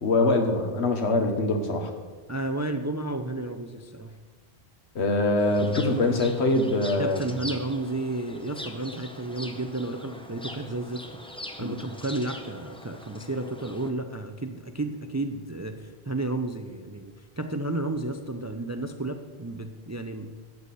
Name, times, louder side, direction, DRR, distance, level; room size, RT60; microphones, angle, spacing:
voice 1, 0.0-1.9 4.9-7.3 11.6-11.7, left 2 dB, 90° left, 5 dB, 1.5 m, -23 dB
voice 2, 2.3-4.2 7.0-20.3, right 2 dB, 30° right, 7 dB, 0.3 m, -32 dB
sound 1, 5.4-13.9, left 1 dB, 5° left, 0.6 m, -42 dB
13.0 x 8.2 x 4.2 m, 1.4 s
omnidirectional pair, 1.1 m